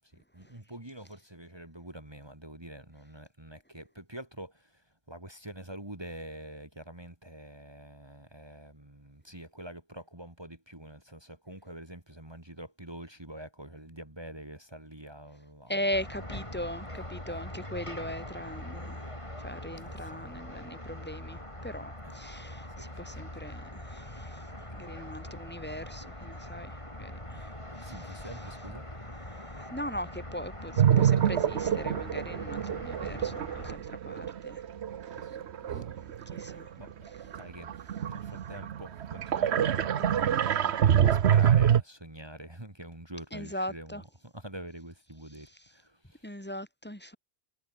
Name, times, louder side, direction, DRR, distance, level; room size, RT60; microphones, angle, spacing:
voice 1, 0.3-16.7 19.8-20.3 22.0-22.4 22.8-23.1 24.5-25.2 27.8-28.9 35.2-35.9 36.3-37.7 38.0-46.3, right 1 dB, 25° right, 2.9 m, -46 dB
voice 2, 15.7-19.0 19.4-24.4 24.7-26.7 27.0-27.5 27.9-28.3 29.6-34.6 35.7-35.8 36.3-36.7 43.3-44.0 46.2-47.2, equal, 10° left, 2.8 m, -39 dB
sound 1, 15.9-33.8, left 1 dB, 30° left, 5.6 m, -42 dB
sound 2, 30.8-36.7 37.2-41.8, right 9 dB, 85° right, 1.1 m, -26 dB
omnidirectional pair, 1.1 m